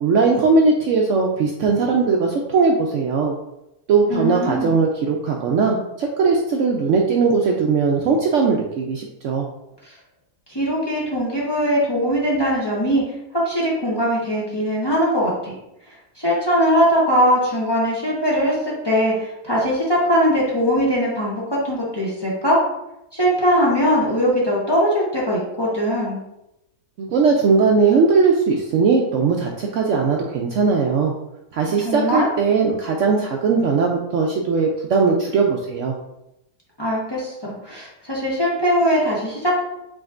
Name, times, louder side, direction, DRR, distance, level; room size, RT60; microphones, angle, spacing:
voice 1, 0.0-3.3 3.9-9.5 27.0-31.1 31.5-35.9, right 4 dB, 70° right, 0 dB, 0.8 m, -19 dB
voice 2, 4.1-4.7 9.8-9.9 10.5-13.0 13.3-15.5 16.2-22.6 23.1-26.2 31.6-32.3 36.8-37.3 37.6-39.6, equal, 20° left, -6 dB, 0.9 m, -20 dB
5.0 x 4.0 x 2.5 m, 0.87 s
omnidirectional pair, 1.6 m